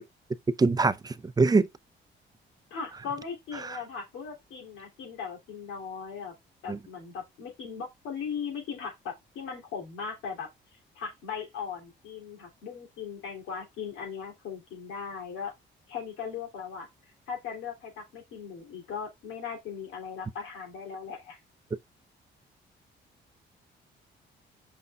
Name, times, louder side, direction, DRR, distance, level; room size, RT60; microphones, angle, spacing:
voice 1, 0.6-1.7 3.5-3.8 6.7-6.8, right 3 dB, 20° right, 0.6 m, -24 dB
voice 2, 2.7-6.3 6.6-15.5 15.9-16.9 17.3-21.4, left 6 dB, 90° left, 3.0 m, -38 dB
8.0 x 5.7 x 2.4 m
cardioid pair, 90°, 20 cm